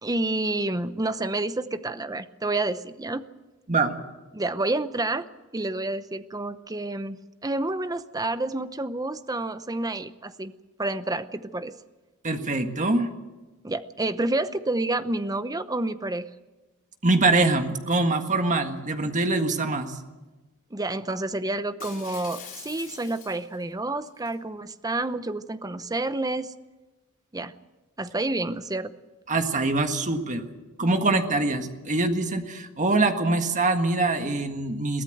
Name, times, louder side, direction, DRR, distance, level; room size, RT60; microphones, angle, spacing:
voice 1, 0.0-3.2 4.3-5.3 5.5-10.5 10.8-11.7 13.6-16.3 20.7-26.5 27.3-27.5 28.0-28.9, right 2 dB, 15° right, 12 dB, 0.8 m, -29 dB
voice 2, 12.2-13.1 17.0-20.0 29.3-30.4 30.8-35.0, right 2 dB, 35° right, 6 dB, 1.7 m, -24 dB
Shatter, 21.8-23.6 24.0-24.3, left 7 dB, 40° left, 5.4 m, -43 dB
22.5 x 16.0 x 7.9 m, 1.2 s
head